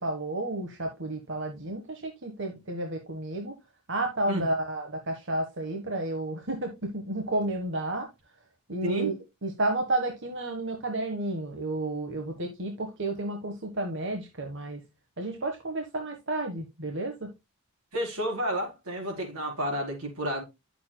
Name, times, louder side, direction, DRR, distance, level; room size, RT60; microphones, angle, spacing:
voice 1, 0.0-3.5 3.9-8.1 8.7-9.2 9.4-14.8 15.2-17.3, right 2 dB, 55° right, 1.5 m, -31 dB
voice 2, 8.8-9.1 17.9-20.4, equal, 80° right, 4.3 m, -31 dB
11.0 x 6.9 x 2.3 m
head